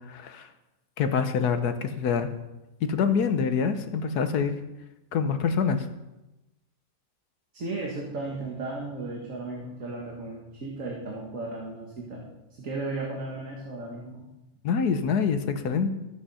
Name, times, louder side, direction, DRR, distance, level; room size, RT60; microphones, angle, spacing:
voice 1, 0.1-0.5 1.0-2.3 2.8-4.6 5.1-5.9 14.6-15.9, left 6 dB, 70° left, 9 dB, 1.4 m, -25 dB
voice 2, 7.5-12.3 12.6-14.3, right 2 dB, 55° right, -2 dB, 2.0 m, -35 dB
13.0 x 8.2 x 5.6 m, 0.99 s
omnidirectional pair, 1.7 m